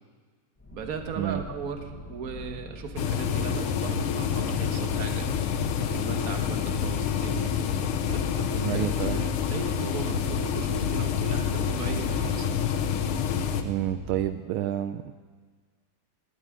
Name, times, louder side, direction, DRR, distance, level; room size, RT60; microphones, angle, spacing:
sound 1, 0.6-14.3, left 2 dB, 20° left, 0.4 m, -43 dB
voice 1, 0.7-5.3 5.8-7.5 8.0-12.5, right 6 dB, 45° right, 4 dB, 1.6 m, -38 dB
sound 2, 3.0-13.6, left 7 dB, 85° left, 1.8 m, -27 dB
voice 2, 8.6-9.2 13.6-15.1, right 12 dB, 80° right, 9 dB, 1.4 m, -29 dB
13.0 x 9.8 x 9.9 m, 1.5 s
omnidirectional pair, 2.3 m